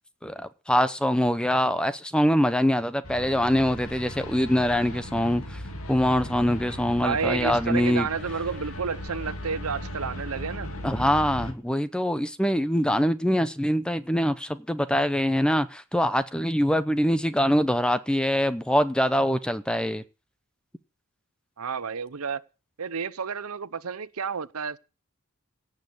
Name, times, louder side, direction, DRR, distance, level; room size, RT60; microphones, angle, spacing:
voice 1, 0.2-5.6 5.9-8.1 10.8-20.0, equal, 5° left, 0.7 m, -24 dB
sound 1, 3.0-11.5, equal, 75° left, 2.4 m, -37 dB
voice 2, 7.0-10.7 21.6-22.4 22.8-24.8, right 6 dB, 85° right, 0.7 m, -30 dB
16.5 x 6.4 x 8.5 m
head